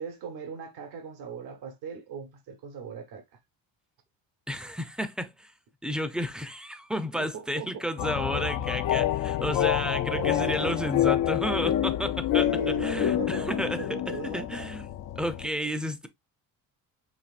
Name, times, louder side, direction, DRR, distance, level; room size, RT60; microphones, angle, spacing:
voice 1, 0.0-3.2 7.1-7.8 10.1-11.0 12.5-14.7, right 3 dB, 70° right, 1.2 m, -38 dB
voice 2, 4.5-5.5 5.8-16.1, equal, ahead, 0.6 m, -32 dB
sound 1, 8.0-15.4, left 12 dB, 50° left, 0.5 m, -27 dB
5.9 x 2.6 x 2.4 m
supercardioid pair, 90°, 39 cm